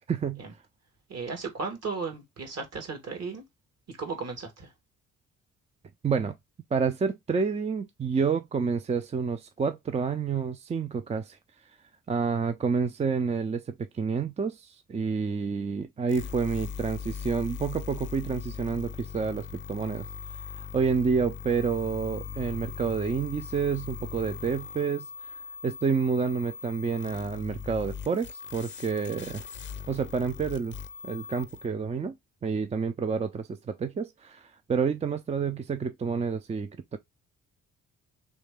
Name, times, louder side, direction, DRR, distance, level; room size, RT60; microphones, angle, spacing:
voice 1, 0.1-0.4 6.0-6.4 6.7-11.4 12.1-20.1 20.6-25.4 25.6-29.4 29.9-30.8 31.0-32.1 32.4-37.0, right 5 dB, 20° right, 0.4 m, -29 dB
voice 2, 1.1-3.4 3.9-4.7, right 4 dB, 55° right, 1.7 m, -35 dB
sound 1, 16.1-31.7, left 6 dB, 40° left, 0.6 m, -40 dB
3.3 x 3.2 x 3.5 m
cardioid pair, 90°, 30 cm